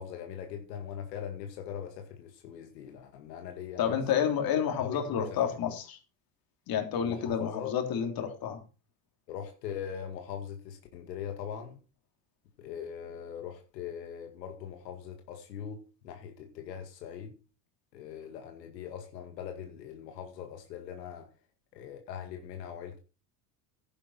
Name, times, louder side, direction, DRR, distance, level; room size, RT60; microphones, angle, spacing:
voice 1, 0.0-4.0 4.8-5.6 6.9-7.8 9.3-11.8 12.6-17.3 17.9-21.3 21.7-23.0, left 8 dB, 85° left, 2.2 m, -41 dB
voice 2, 3.8-6.0 6.7-8.6, left 8 dB, 45° left, 3.4 m, -29 dB
11.5 x 10.0 x 4.2 m
supercardioid pair, 100°, 48 cm